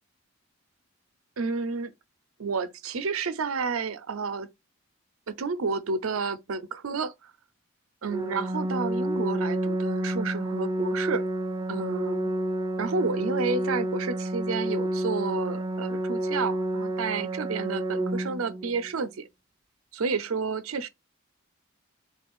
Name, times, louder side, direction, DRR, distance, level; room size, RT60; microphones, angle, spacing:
voice 1, 1.4-1.9 2.4-4.5 5.3-7.3 8.0-11.2 11.7-12.3 12.8-19.3 19.9-20.9, right 4 dB, 85° right, 0.6 m, -30 dB
Organ, 8.1-19.1, right 1 dB, 20° right, 0.3 m, -30 dB
3.3 x 2.4 x 3.6 m
head